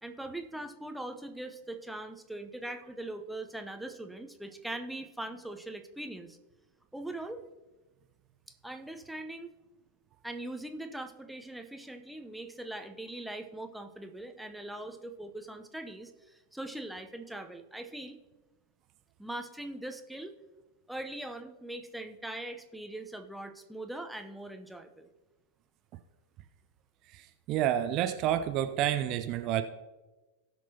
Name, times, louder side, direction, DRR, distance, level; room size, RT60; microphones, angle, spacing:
voice 1, 0.0-6.4 6.9-7.4 8.6-9.5 10.2-18.2 19.2-20.3 20.9-25.1, right 1 dB, ahead, 6 dB, 0.8 m, -41 dB
voice 2, 27.1-29.6, right 11 dB, 40° right, 9 dB, 0.5 m, -29 dB
18.0 x 6.1 x 2.8 m, 1.2 s
figure-of-eight pair, 90°, 0 cm